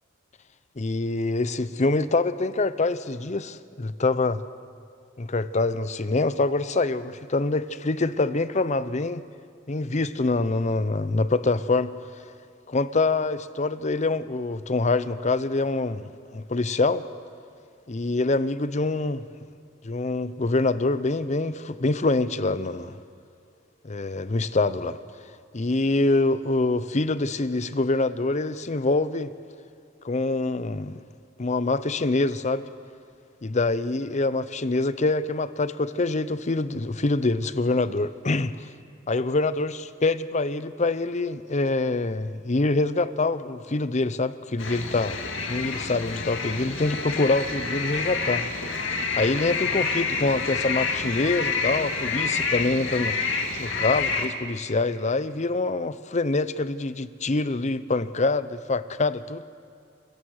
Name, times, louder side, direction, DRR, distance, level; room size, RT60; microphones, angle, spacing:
voice 1, 0.8-4.4 5.2-9.2 9.7-11.9 12.7-17.0 17.9-19.2 19.8-23.0 23.8-25.0 25.5-29.3 30.0-31.0 31.4-32.6 33.4-38.7 39.1-45.2 45.5-48.4 49.2-53.3 53.6-59.4, left 3 dB, 40° left, 14 dB, 0.7 m, -25 dB
sound 1, 44.6-54.3, left 4 dB, 75° left, 2.1 m, -28 dB
28.0 x 16.0 x 6.5 m, 2.4 s
head